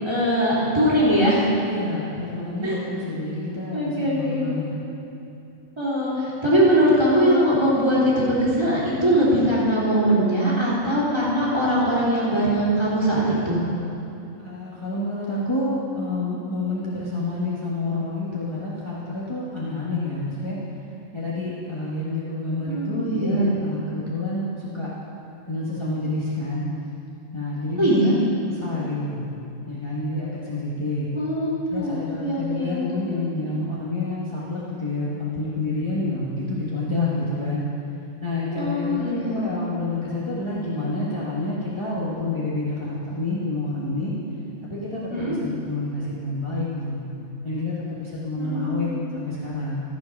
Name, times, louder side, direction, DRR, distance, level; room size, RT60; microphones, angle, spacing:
voice 1, 0.0-1.5 2.6-2.8 3.7-4.5 5.8-13.6 22.7-23.5 27.8-28.1 31.1-32.8 38.5-39.5 45.1-45.3 48.4-49.0, equal, 20° right, -8 dB, 3.1 m, -21 dB
voice 2, 1.6-4.7 14.4-20.6 21.1-24.9 25.5-26.7 27.3-28.1 28.5-29.2 29.7-31.1 31.7-37.6 38.2-44.1 44.6-47.0 47.4-49.8, left 2 dB, 20° left, -8 dB, 1.4 m, -28 dB
13.5 x 7.7 x 5.3 m, 2.7 s
omnidirectional pair, 1.4 m